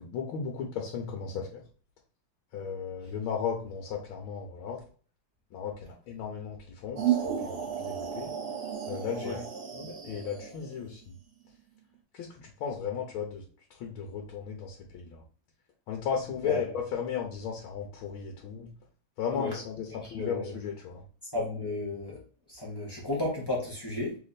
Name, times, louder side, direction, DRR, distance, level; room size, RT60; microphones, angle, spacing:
voice 1, 0.0-1.6 2.5-4.8 5.5-8.3 8.9-9.4 9.7-11.1 12.1-13.4 13.7-15.2 15.9-18.7 19.2-21.0, left 7 dB, 85° left, 1 dB, 1.6 m, -35 dB
sound 1, 7.0-10.9, right 9 dB, 70° right, 0.6 m, -33 dB
voice 2, 16.4-16.8 19.3-19.6 20.0-20.5 21.3-22.2 22.5-24.2, left 2 dB, 15° left, -5 dB, 1.2 m, -33 dB
3.6 x 3.2 x 4.0 m, 0.41 s
omnidirectional pair, 2.2 m